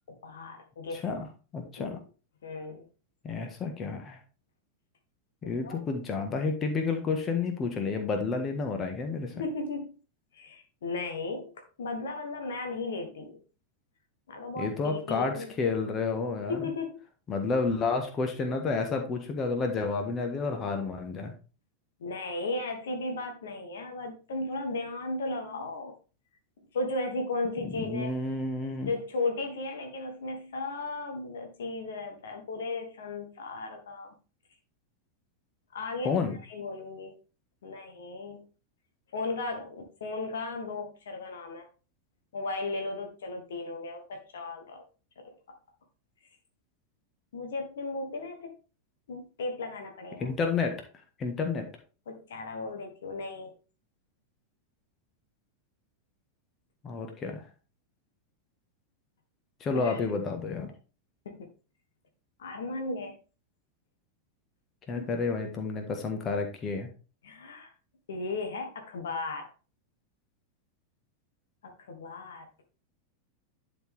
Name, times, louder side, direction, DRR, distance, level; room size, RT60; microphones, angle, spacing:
voice 1, 0.1-1.0 1.8-1.9 2.4-2.8 5.4-5.8 9.3-9.9 10.3-13.4 14.3-15.5 16.5-17.0 22.0-25.9 26.7-28.1 28.8-34.2 35.7-36.2 36.5-37.1 37.6-38.4 39.1-41.7 42.3-44.8 47.3-48.5 49.1-50.3 52.1-53.5 59.7-60.0 61.2-61.5 62.4-63.2 65.0-65.1 67.2-67.7 68.1-69.5 71.6-72.5, left 3 dB, 60° left, 1.5 m, -35 dB
voice 2, 0.9-1.3 1.5-2.0 3.2-4.2 5.4-9.3 14.6-16.7 17.3-21.3 27.8-28.9 36.0-36.4 50.2-50.8 51.2-51.7 56.8-57.4 59.6-60.7 64.9-66.9, left 4 dB, 25° left, 1.6 m, -30 dB
11.0 x 4.5 x 3.5 m
figure-of-eight pair, 90°, 0 cm